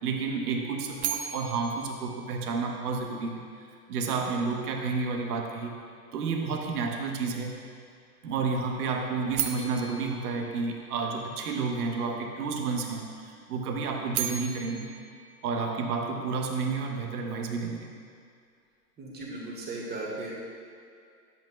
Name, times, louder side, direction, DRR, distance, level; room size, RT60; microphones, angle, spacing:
voice 1, 0.0-3.5 3.9-5.8 6.1-7.5 8.2-14.9 15.4-17.9, right 4 dB, 70° right, 2 dB, 1.2 m, -31 dB
sound 1, 1.0-3.1 9.3-11.5 13.9-16.3, right 9 dB, 50° right, 0.8 m, -37 dB
voice 2, 19.0-20.3, right 2 dB, 20° right, -4 dB, 1.8 m, -36 dB
10.5 x 8.2 x 2.3 m, 2.3 s
hypercardioid pair, 110°, 47 cm